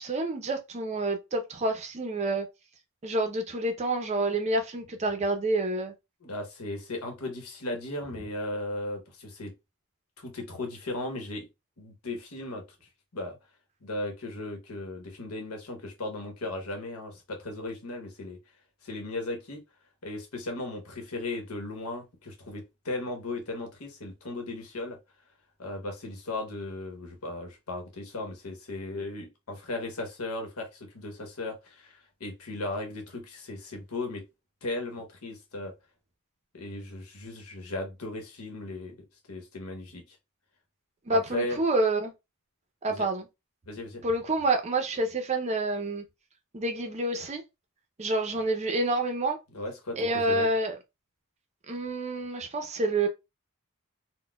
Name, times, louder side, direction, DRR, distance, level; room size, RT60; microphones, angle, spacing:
voice 1, 0.0-2.5 3.0-5.9 41.1-42.1 42.8-43.3 44.0-46.0 46.5-47.4 48.0-49.4 50.0-50.8 51.7-53.1, right 2 dB, 30° right, 0.5 m, -28 dB
voice 2, 6.2-9.5 10.2-11.5 11.8-12.6 13.1-13.4 13.8-18.4 18.8-19.6 20.0-25.0 25.6-34.2 34.6-35.7 36.5-39.0 39.3-40.2 41.1-41.6 42.9-43.1 43.7-44.0 49.5-50.5, left 2 dB, 85° left, 1.0 m, -36 dB
4.1 x 2.1 x 2.2 m
head